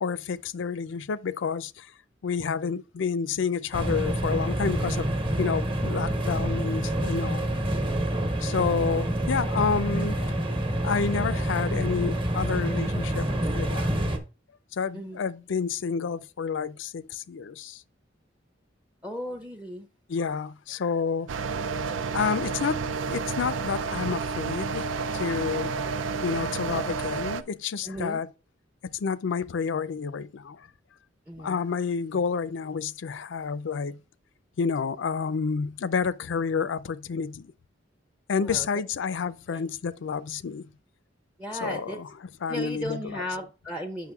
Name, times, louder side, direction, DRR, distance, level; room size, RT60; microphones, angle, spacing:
voice 1, 0.0-1.9 2.2-5.1 5.4-7.5 8.4-10.4 10.8-13.9 14.7-17.8 20.1-21.5 22.1-25.7 26.2-28.3 28.8-30.7 31.4-34.0 34.6-37.5 38.3-40.7 41.6-42.1 42.4-43.2, left 6 dB, 75° left, 0.4 m, -29 dB
sound 1, 3.7-14.2, right 1 dB, 30° right, 1.0 m, -27 dB
voice 2, 19.0-19.9 27.8-28.2 31.3-31.7 38.4-38.7 39.5-39.7 41.4-42.0 42.5-44.1, equal, 10° right, 0.6 m, -35 dB
sound 2, 21.3-27.4, right 5 dB, 85° right, 0.4 m, -30 dB
8.3 x 6.0 x 2.3 m
head